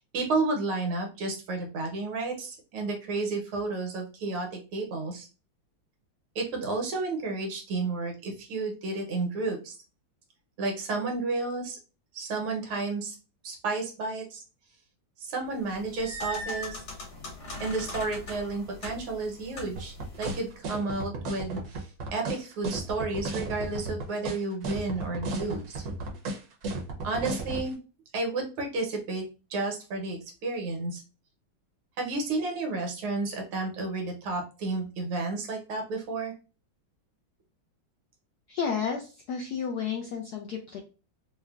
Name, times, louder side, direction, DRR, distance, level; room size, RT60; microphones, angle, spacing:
voice 1, 0.1-5.3 6.4-9.7 10.6-11.8 12.1-13.2 13.4-14.4 15.2-16.8 17.6-25.8 27.0-27.8 28.1-31.0 32.0-36.3, right 3 dB, 85° right, 1 dB, 1.8 m, -32 dB
sound 1, 15.6-20.6, left 1 dB, 65° left, 2.2 m, -40 dB
sound 2, 19.8-27.7, right 2 dB, 65° right, 1.0 m, -34 dB
voice 2, 38.5-40.8, left 6 dB, 85° left, 2 dB, 0.8 m, -32 dB
4.7 x 2.2 x 2.3 m, 0.33 s
omnidirectional pair, 2.3 m